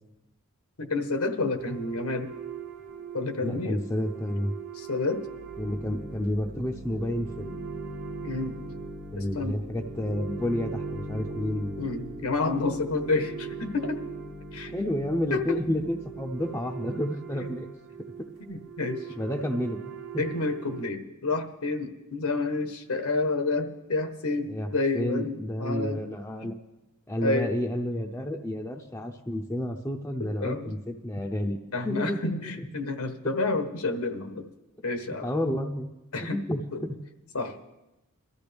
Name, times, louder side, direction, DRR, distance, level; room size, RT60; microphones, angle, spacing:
voice 1, 0.8-2.3 3.1-3.8 4.8-5.2 8.2-8.6 9.2-9.6 11.8-14.0 14.5-14.7 15.3-15.6 18.5-19.0 20.2-26.0 26.4-26.5 27.2-27.5 30.4-30.7 31.7-34.4 34.8-35.3 36.1-36.4 36.7-36.8 37.3-37.6, left 3 dB, 80° left, 7 dB, 1.2 m, -29 dB
sound 1, 1.6-20.9, right 4 dB, 50° right, 1.3 m, -40 dB
voice 2, 3.4-4.5 5.6-7.8 9.1-11.8 14.7-17.7 19.2-19.8 20.1-20.2 24.5-26.6 27.1-31.6 31.8-32.7 35.2-35.9 36.2-37.0, left 1 dB, 10° left, 0 dB, 0.6 m, -30 dB
22.0 x 13.5 x 3.5 m, 0.98 s
head